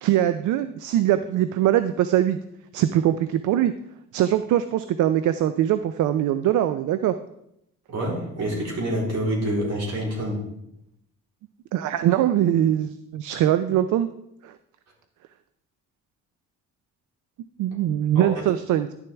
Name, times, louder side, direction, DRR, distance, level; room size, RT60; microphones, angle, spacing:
voice 1, 0.0-2.4 2.7-3.7 4.1-7.1 11.7-14.1 14.4-14.5 17.6-18.9, right 11 dB, 80° right, 11 dB, 0.5 m, -22 dB
voice 2, 7.9-10.4 18.1-18.5, right 1 dB, 60° right, -3 dB, 3.7 m, -27 dB
11.0 x 7.0 x 3.4 m, 0.78 s
cardioid pair, 90°, 30 cm